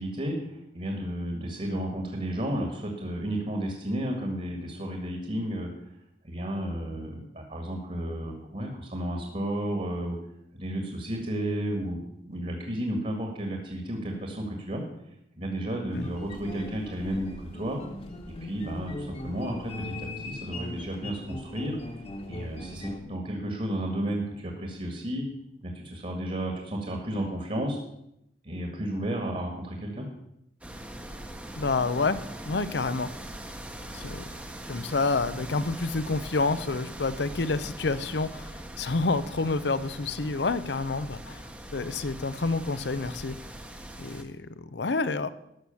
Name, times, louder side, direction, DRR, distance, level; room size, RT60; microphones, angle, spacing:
voice 1, 0.0-5.7 6.2-10.2 10.5-12.0 12.2-14.8 15.4-17.8 18.3-21.8 22.3-25.2 25.6-27.8 28.4-30.1, right 1 dB, 40° right, 2 dB, 1.9 m, -32 dB
sound 1, 15.9-23.0, left 1 dB, 35° left, 1.4 m, -39 dB
sound 2, 30.6-44.2, right 1 dB, 10° right, 1.0 m, -41 dB
voice 2, 31.6-32.2 32.4-33.1 33.9-34.2 34.7-41.5 41.7-43.4 44.0-45.3, left 3 dB, 75° left, 14 dB, 0.7 m, -28 dB
13.0 x 6.2 x 7.1 m, 0.81 s
head